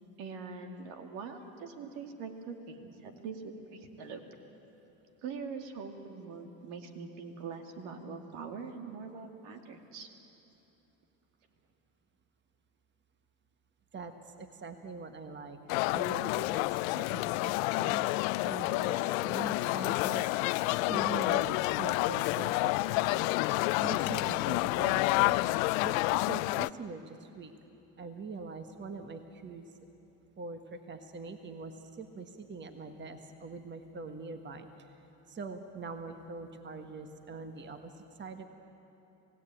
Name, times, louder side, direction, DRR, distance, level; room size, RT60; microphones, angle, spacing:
voice 1, 0.2-4.2 5.2-10.1, right 5 dB, 75° right, 5 dB, 2.5 m, -43 dB
voice 2, 13.9-15.6 15.9-20.3 20.9-23.3 23.8-25.4 25.8-27.5 28.0-29.6 30.4-35.0 35.3-38.4, right 4 dB, 25° right, 7 dB, 1.5 m, -43 dB
sound 1, 15.7-26.7, left 21 dB, 80° left, 0.5 m, -29 dB
27.0 x 17.0 x 9.0 m, 3.0 s
supercardioid pair, 95°, 41 cm